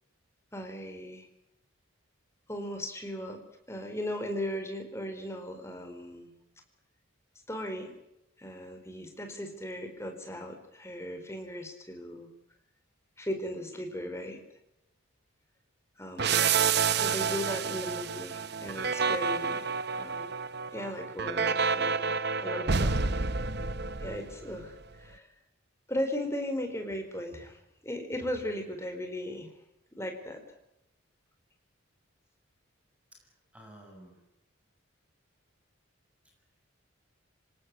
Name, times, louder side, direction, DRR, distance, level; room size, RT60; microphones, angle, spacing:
voice 1, 0.5-1.3 2.5-3.4 3.7-6.3 7.5-7.9 8.4-12.3 13.2-14.5 16.0-16.5 16.9-20.4 20.7-22.1 22.4-23.0 24.0-25.3 25.9-29.5 30.0-30.4, left 1 dB, 15° left, 5 dB, 4.4 m, -37 dB
sound 1, 16.2-24.6, right 5 dB, 50° right, 1.1 m, -29 dB
voice 2, 33.1-34.2, right 1 dB, 5° right, 1 dB, 7.0 m, -53 dB
27.0 x 18.5 x 9.6 m, 0.86 s
head